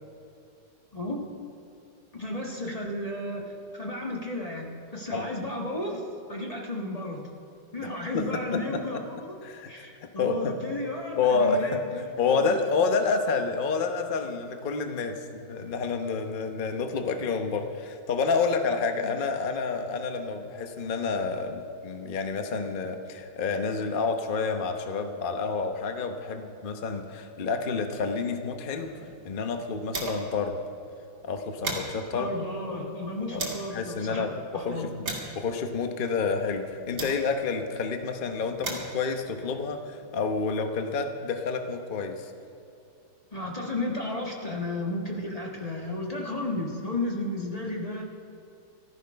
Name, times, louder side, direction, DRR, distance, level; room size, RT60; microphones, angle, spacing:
voice 1, 2.1-3.5 3.8-7.3 7.7-9.3 9.7-12.6 32.1-34.2 34.5-34.9 43.3-48.0, left 1 dB, 20° left, -1 dB, 1.4 m, -33 dB
voice 2, 10.2-10.5 11.2-11.8 12.2-29.0 29.2-30.6 31.2-32.3 33.3-33.4 33.7-35.1 35.3-42.3, left 4 dB, 40° left, 5 dB, 0.7 m, -29 dB
sound 1, 28.6-30.4 30.8-30.9 31.2-33.7 34.4-37.6 38.3-40.5, right 2 dB, 45° right, 2.6 m, -39 dB
14.5 x 13.0 x 5.7 m, 2.6 s
omnidirectional pair, 2.2 m